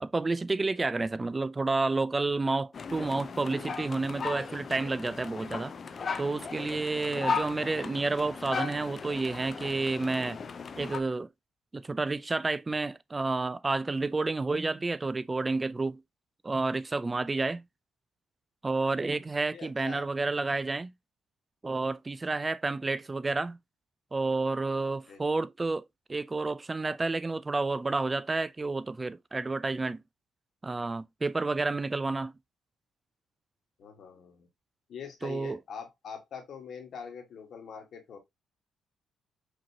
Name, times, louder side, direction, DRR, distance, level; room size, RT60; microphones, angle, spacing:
voice 1, 0.0-5.7 6.2-10.4 10.8-11.3 11.7-16.0 16.4-17.6 18.6-20.9 21.6-23.6 24.1-25.8 26.1-30.0 30.6-32.3 35.2-35.6, right 3 dB, 25° right, 0.3 m, -30 dB
sound 1, 2.7-11.0, left 5 dB, 45° left, 0.5 m, -36 dB
voice 2, 19.5-20.1 25.1-25.2 33.8-34.5 34.9-38.2, left 6 dB, 65° left, 1.5 m, -43 dB
5.1 x 3.0 x 2.8 m
cardioid pair, 90°, 0 cm